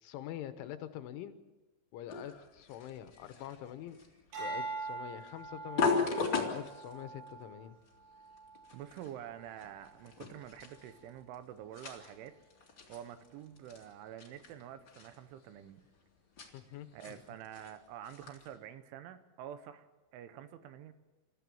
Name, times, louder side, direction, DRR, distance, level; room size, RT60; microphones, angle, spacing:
voice 1, 0.0-1.4 1.9-4.0 4.4-7.8 16.5-17.2, left 11 dB, 75° left, 10 dB, 3.3 m, -45 dB
sound 1, 2.1-18.6, left 4 dB, 35° left, 2.1 m, -40 dB
sound 2, 4.3-8.8 9.4-9.8, right 3 dB, 60° right, 10.5 m, -43 dB
voice 2, 8.7-12.4 12.9-15.9 16.9-20.9, right 10 dB, 75° right, 11 dB, 3.2 m, -48 dB
29.0 x 14.5 x 7.1 m, 1.1 s
omnidirectional pair, 5.9 m